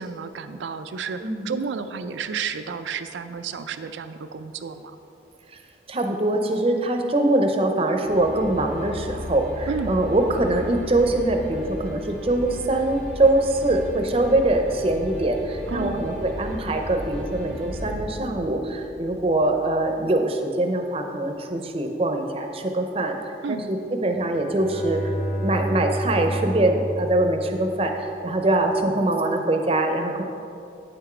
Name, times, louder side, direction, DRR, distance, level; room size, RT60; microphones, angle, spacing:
voice 1, 0.0-5.0 9.7-10.0 15.7-16.0 23.4-23.7, right 5 dB, 85° right, 9 dB, 0.4 m, -31 dB
voice 2, 5.9-23.8 24.0-25.1 25.4-30.2, right 2 dB, 30° right, 4 dB, 0.6 m, -23 dB
sound 1, 8.0-20.0, left 1 dB, 75° left, 2.0 m, -36 dB
Bowed string instrument, 24.2-28.3, equal, 35° left, 0.7 m, -30 dB
9.0 x 6.0 x 4.4 m, 2.7 s
head